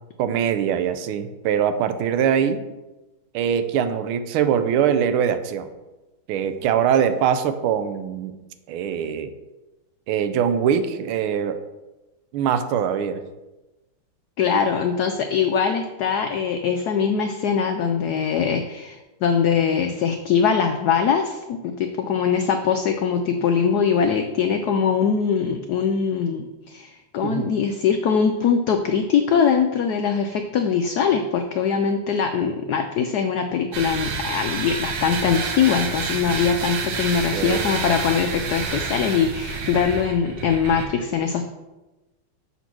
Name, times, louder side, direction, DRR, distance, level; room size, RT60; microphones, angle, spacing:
voice 1, 0.2-2.6 3.3-5.7 6.3-8.4 8.7-9.3 10.1-11.6 12.3-13.2 27.2-27.5 37.3-37.7, right 8 dB, 90° right, 10 dB, 1.5 m, -22 dB
voice 2, 14.4-41.4, left 6 dB, 85° left, 5 dB, 0.8 m, -22 dB
sound 1, 33.7-40.9, right 5 dB, 60° right, 1.2 m, -29 dB
7.0 x 4.1 x 6.0 m, 1.1 s
omnidirectional pair, 2.3 m